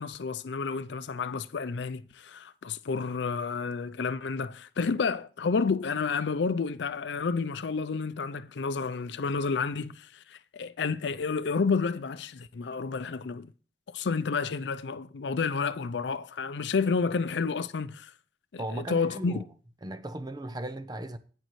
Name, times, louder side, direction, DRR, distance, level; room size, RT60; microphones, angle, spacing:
voice 1, 0.0-13.5 13.9-18.1 18.5-19.4, left 5 dB, 80° left, 0.5 m, -30 dB
voice 2, 18.6-19.4 19.8-21.2, right 1 dB, 25° right, 0.7 m, -37 dB
11.0 x 9.1 x 3.1 m
head